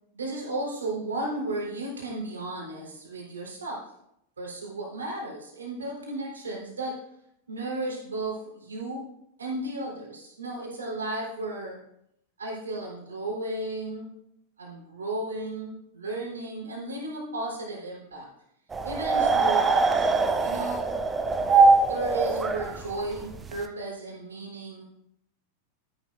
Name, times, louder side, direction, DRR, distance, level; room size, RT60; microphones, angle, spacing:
voice 1, 0.1-3.8 4.4-7.0 7.5-9.1 9.4-11.8 12.4-14.1 14.6-18.3 18.8-20.0 20.4-20.9 21.9-24.8, right 2 dB, 70° right, -2 dB, 3.8 m, -34 dB
sound 1, 18.7-23.6, right 3 dB, 15° right, 0.9 m, -22 dB
13.5 x 10.5 x 2.6 m, 0.76 s
figure-of-eight pair, 90°, 0 cm